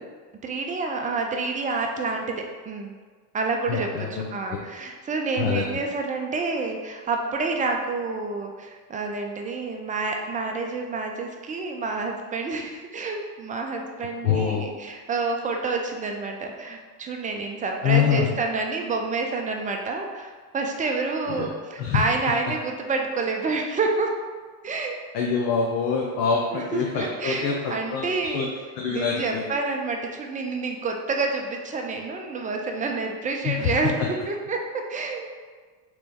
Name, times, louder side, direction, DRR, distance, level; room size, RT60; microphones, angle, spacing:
voice 1, 0.4-3.0 3.3-24.1 24.6-25.0 26.5-28.5 28.9-35.3, right 3 dB, 20° right, 2 dB, 0.3 m, -28 dB
voice 2, 3.7-4.3 5.4-5.8 14.2-14.7 17.8-18.3 21.4-21.5 21.8-22.0 25.1-28.5 28.8-29.4 33.4-33.7, left 6 dB, 80° left, -1 dB, 0.6 m, -25 dB
3.0 x 3.0 x 3.4 m, 1.5 s
supercardioid pair, 80°, 50 cm